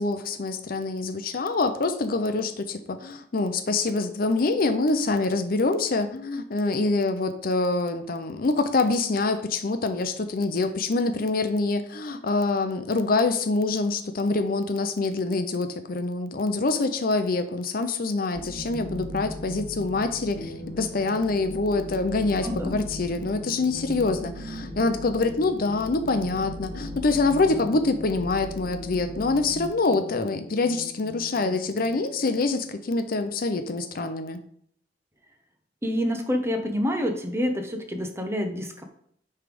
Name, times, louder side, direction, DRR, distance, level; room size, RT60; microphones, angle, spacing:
voice 1, 0.0-34.4, left 3 dB, 55° left, 9 dB, 0.6 m, -25 dB
sound 1, 18.3-29.7, equal, 60° right, 1.3 m, -39 dB
sound 2, 20.4-33.2, left 2 dB, 80° left, 1.0 m, -44 dB
voice 2, 22.4-22.8 35.8-38.8, equal, 15° right, 5 dB, 0.9 m, -27 dB
9.6 x 3.4 x 5.2 m, 0.67 s
head